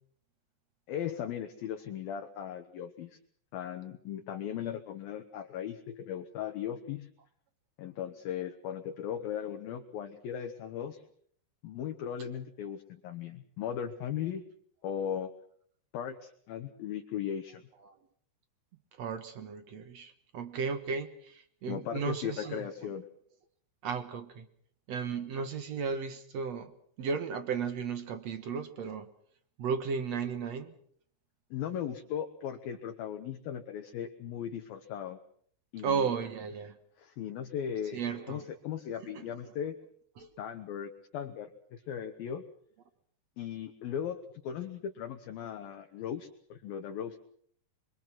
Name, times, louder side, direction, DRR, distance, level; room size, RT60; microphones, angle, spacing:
voice 1, 0.9-3.2 3.5-7.1 7.8-11.0 11.6-14.4 14.8-15.3 15.9-17.6 21.7-23.1 31.5-35.2 35.7-36.1 37.0-38.0 38.3-39.8 40.4-42.4 43.4-47.2, left 9 dB, 65° left, 5 dB, 2.6 m, -37 dB
voice 2, 19.0-22.7 23.8-24.5 24.9-26.7 27.0-29.1 29.6-30.7 35.8-36.8 37.9-38.5 39.0-39.1 40.2-40.3, right 6 dB, 75° right, 10 dB, 1.5 m, -34 dB
25.5 x 25.0 x 6.1 m, 0.62 s
omnidirectional pair, 5.3 m